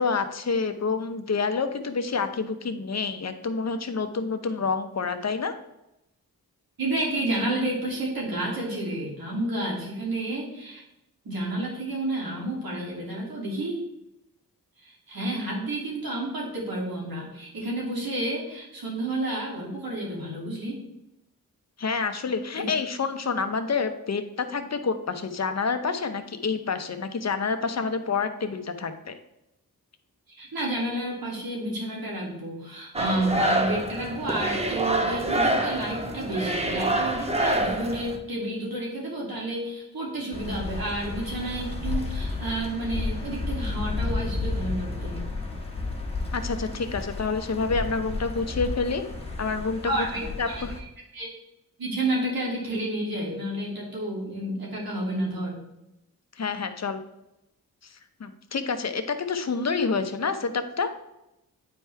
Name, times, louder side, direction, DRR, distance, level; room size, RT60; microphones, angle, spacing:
voice 1, 0.0-5.6 21.8-29.2 46.3-49.0 49.4-50.1 50.4-50.7 56.4-57.0 57.8-60.9, left 4 dB, 45° left, 8 dB, 0.8 m, -28 dB
voice 2, 6.8-10.8 11.2-13.8 14.8-20.8 22.6-22.7 30.3-45.2 49.8-50.8 51.1-51.3 51.8-55.6, right 1 dB, 75° right, -3 dB, 2.8 m, -30 dB
sound 1, 32.9-38.2, right 1 dB, 15° right, 0.9 m, -26 dB
sound 2, 40.3-50.8, left 3 dB, 15° left, 1.6 m, -32 dB
9.3 x 4.6 x 3.4 m, 0.90 s
cardioid pair, 65°, 36 cm